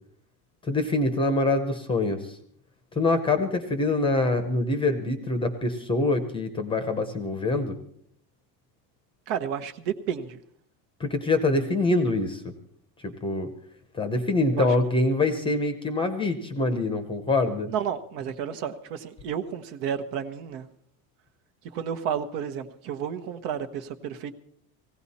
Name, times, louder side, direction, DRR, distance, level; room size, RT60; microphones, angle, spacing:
voice 1, 0.7-2.2 3.0-7.8 11.0-12.5 13.0-13.5 14.0-17.7, left 2 dB, 10° left, 9 dB, 0.7 m, -25 dB
voice 2, 9.3-10.4 14.5-14.7 17.7-20.7 21.7-24.3, right 8 dB, 65° right, 9 dB, 1.3 m, -31 dB
18.5 x 16.0 x 4.2 m, 0.66 s
cardioid pair, 175°, 49 cm